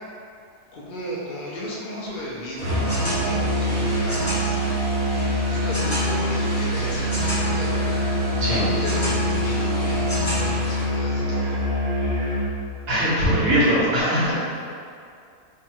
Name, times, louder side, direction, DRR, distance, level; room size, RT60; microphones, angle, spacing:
voice 1, 0.7-4.6 5.5-7.9 8.4-11.7 13.3-13.4, equal, 65° left, -5 dB, 0.5 m, -34 dB
sound 1, 2.6-10.8, equal, 35° left, 1.6 m, -30 dB
Musical instrument, 2.6-12.6, equal, 55° right, 1.1 m, -24 dB
voice 2, 12.9-14.3, equal, 85° right, -10 dB, 1.8 m, -20 dB
3.6 x 2.4 x 4.3 m, 2.4 s
omnidirectional pair, 1.6 m